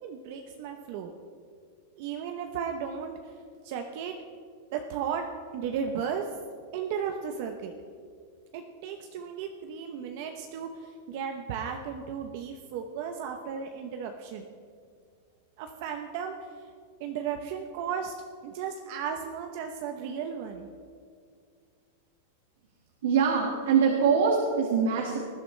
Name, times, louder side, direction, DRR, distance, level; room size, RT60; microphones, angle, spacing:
voice 1, 0.0-1.1 2.0-3.3 3.6-4.1 4.7-5.3 5.5-6.3 6.7-7.7 8.5-14.5 15.6-16.3 17.0-18.1 18.4-20.7, right 7 dB, 45° right, 5 dB, 0.8 m, -35 dB
voice 2, 23.0-25.2, right 6 dB, 85° right, -1 dB, 1.7 m, -23 dB
19.5 x 11.5 x 3.3 m, 2.2 s
supercardioid pair, 160°, 0 cm